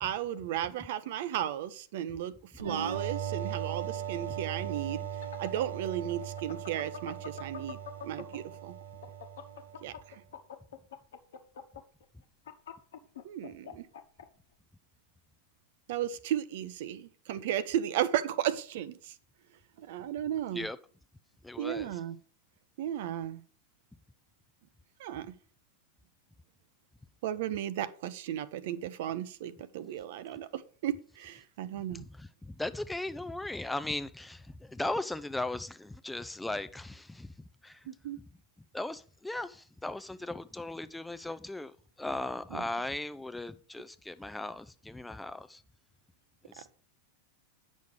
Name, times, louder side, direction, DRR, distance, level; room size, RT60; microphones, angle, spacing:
voice 1, 0.0-5.0 5.4-8.8 9.8-10.2 13.2-13.9 15.9-19.1 19.8-20.7 21.6-22.1 22.8-23.4 25.0-25.3 27.2-32.0 37.9-38.2 42.5-42.6 46.6-46.7, right 11 dB, 55° right, 0.7 m, -35 dB
sound 1, 2.6-10.0, right 9 dB, 70° right, 1.3 m, -39 dB
sound 2, 5.0-8.6 8.9-14.3, left 8 dB, 60° left, 1.1 m, -45 dB
voice 2, 21.4-22.0 31.9-37.3 37.6-37.9 38.7-45.6 46.4-46.7, left 2 dB, 5° left, 0.4 m, -38 dB
9.4 x 6.3 x 4.9 m
figure-of-eight pair, 90°, 0 cm